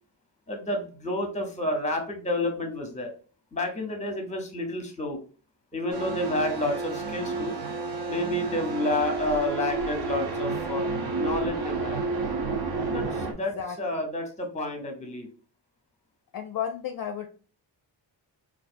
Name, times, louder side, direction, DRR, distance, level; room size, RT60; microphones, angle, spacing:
voice 1, 0.5-3.1 3.5-5.2 5.7-7.5 8.1-10.9 11.2-12.0 12.9-15.3, left 1 dB, 15° left, 5 dB, 0.7 m, -30 dB
sound 1, 5.9-13.3, right 3 dB, 55° right, 0.8 m, -30 dB
voice 2, 13.5-14.1 16.3-17.3, left 8 dB, 50° left, 5 dB, 0.4 m, -33 dB
4.6 x 2.4 x 2.5 m, 0.39 s
wide cardioid pair, 150°, 46 cm